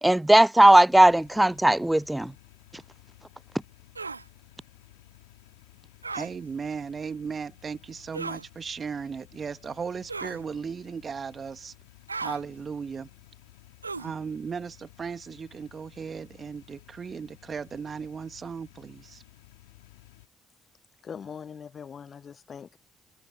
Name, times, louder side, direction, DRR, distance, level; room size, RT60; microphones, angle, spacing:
voice 1, 0.0-2.3, right 1 dB, 10° right, 0.4 m, -18 dB
sound 1, 0.9-20.3, left 20 dB, 75° left, 4.3 m, -55 dB
sound 2, 4.0-4.2 6.0-6.3 8.1-8.5 10.1-10.4 12.1-12.4 13.8-14.2, right 4 dB, 90° right, 0.5 m, -35 dB
voice 2, 6.1-11.7 12.2-13.1 14.0-19.2, right 6 dB, 40° right, 1.9 m, -36 dB
voice 3, 21.0-22.8, left 7 dB, 45° left, 1.0 m, -41 dB
figure-of-eight pair, 45°, 0 cm